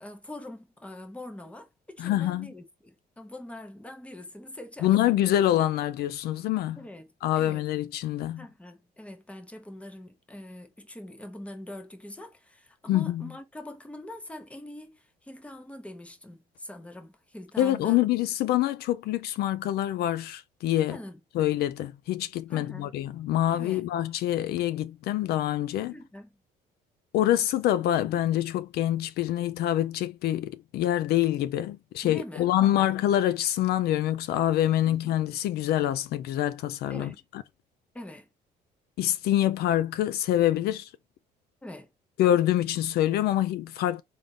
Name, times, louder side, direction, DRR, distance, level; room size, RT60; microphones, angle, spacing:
voice 1, 0.0-5.2 6.8-7.6 8.4-18.0 20.9-21.2 22.5-23.0 23.5-23.8 25.9-26.4 32.0-32.9 34.8-35.2 36.9-37.2 37.9-38.3 41.6-41.9, left 1 dB, 5° left, 0.8 m, -43 dB
voice 2, 2.0-2.5 4.8-6.8 7.2-8.4 12.9-13.3 17.6-21.0 21.3-25.9 27.1-37.1 39.0-40.9 42.2-44.0, left 13 dB, 70° left, 0.4 m, -26 dB
3.6 x 2.6 x 3.7 m
cardioid pair, 110°, 17 cm